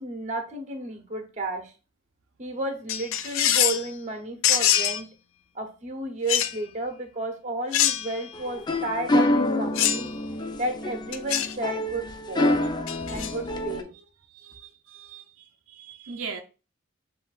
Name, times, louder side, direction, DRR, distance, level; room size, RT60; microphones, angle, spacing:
voice 1, 0.0-1.7 2.4-5.1 5.5-10.1 10.6-12.6 13.1-13.9, right 2 dB, 35° right, 0.9 m, -32 dB
sound 1, 2.9-3.9 4.4-5.0 6.3-6.6 7.7-8.3 9.7-10.1 11.1-11.5 12.9-13.3, left 10 dB, 85° left, 0.4 m, -24 dB
sound 2, 8.3-13.8, left 1 dB, 20° left, 0.3 m, -27 dB
voice 2, 13.9-16.4, right 5 dB, 90° right, 0.6 m, -41 dB
7.4 x 2.7 x 2.4 m
head